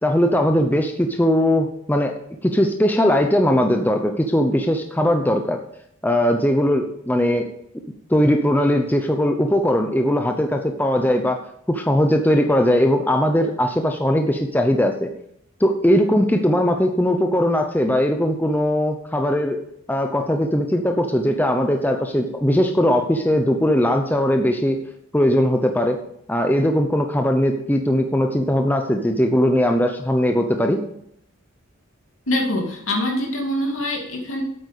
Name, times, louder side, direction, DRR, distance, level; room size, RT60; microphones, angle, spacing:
voice 1, 0.0-2.1 2.4-5.6 6.0-7.5 8.1-11.4 11.7-15.1 15.6-19.6 19.9-24.8 25.1-26.0 26.3-30.8, equal, 10° left, 4 dB, 0.7 m, -19 dB
voice 2, 32.3-34.4, left 1 dB, 70° left, 2 dB, 2.6 m, -24 dB
8.6 x 8.4 x 6.7 m, 0.73 s
head